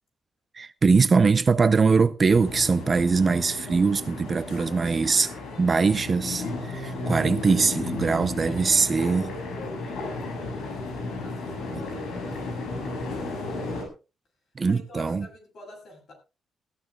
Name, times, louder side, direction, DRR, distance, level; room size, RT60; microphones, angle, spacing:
voice 1, 0.5-5.3 5.6-9.3 11.7-11.8 14.6-15.3, right 4 dB, 30° right, 0.6 m, -22 dB
sound 1, 2.3-13.8, left 2 dB, 90° left, 7.1 m, -34 dB
voice 2, 9.8-13.8 14.6-16.1, left 1 dB, 55° left, 7.9 m, -47 dB
20.0 x 15.5 x 2.4 m
cardioid pair, 155°, 0 cm